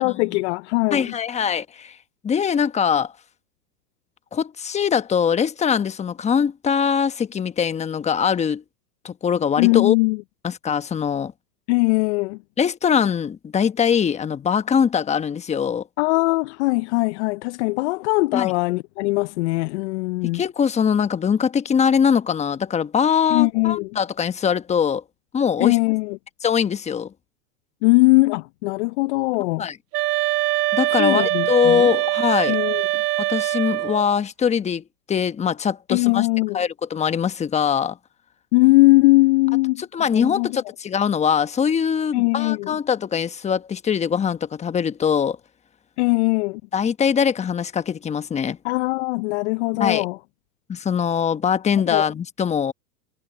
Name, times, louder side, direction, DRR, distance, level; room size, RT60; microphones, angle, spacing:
voice 1, 0.0-1.1 9.6-10.2 11.7-12.4 16.0-20.4 23.3-23.9 25.6-26.2 27.8-29.7 31.0-31.9 32.5-32.8 35.9-36.6 38.5-39.8 40.1-40.6 42.1-42.8 46.0-46.6 48.6-50.2 51.9-52.1, left 24 dB, 45° left, 0.6 m, -20 dB
voice 2, 0.9-2.0 2.2-3.1 4.3-8.6 9.0-9.9 10.4-11.3 12.6-15.8 18.3-18.5 20.3-25.0 25.3-25.8 26.4-27.1 29.6-29.8 30.7-32.6 33.2-36.3 36.5-38.0 39.8-45.4 46.7-48.6 49.8-50.1 50.7-52.7, left 7 dB, 15° left, 1.1 m, -22 dB
sound 1, 29.9-34.1, right 17 dB, 70° right, 0.7 m, -23 dB
hypercardioid pair, 125°, 49 cm